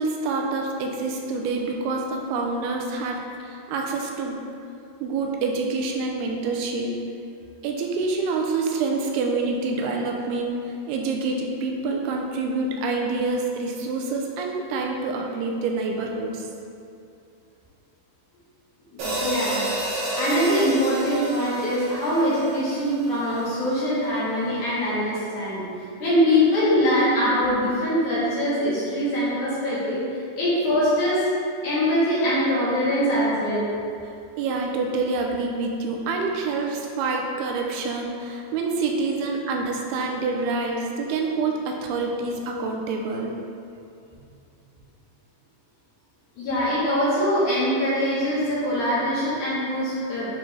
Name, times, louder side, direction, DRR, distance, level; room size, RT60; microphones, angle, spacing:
voice 1, 0.0-4.4 5.0-6.9 7.6-16.5 34.4-43.4, right 3 dB, 85° right, 1 dB, 2.6 m, -27 dB
voice 2, 18.9-19.7 20.2-31.3 31.6-33.7 38.9-39.0 46.4-50.4, equal, 55° left, -10 dB, 2.7 m, -23 dB
sound 1, 19.0-23.4, right 1 dB, 60° right, 2.5 m, -30 dB
9.4 x 3.8 x 3.3 m, 2.5 s
omnidirectional pair, 4.6 m